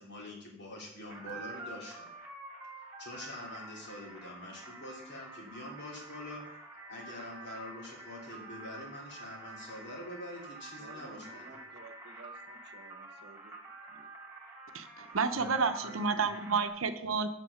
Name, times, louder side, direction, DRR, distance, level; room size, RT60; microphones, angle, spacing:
voice 1, 0.0-2.1 3.0-11.5 15.3-16.3, left 1 dB, 60° left, 2.9 m, -45 dB
sound 1, 1.1-16.7, right 2 dB, 10° right, 2.4 m, -48 dB
voice 2, 10.8-13.6 13.9-14.1, right 2 dB, 55° right, 1.0 m, -54 dB
voice 3, 14.7-17.3, right 5 dB, 85° right, 0.8 m, -30 dB
7.9 x 6.0 x 6.5 m
head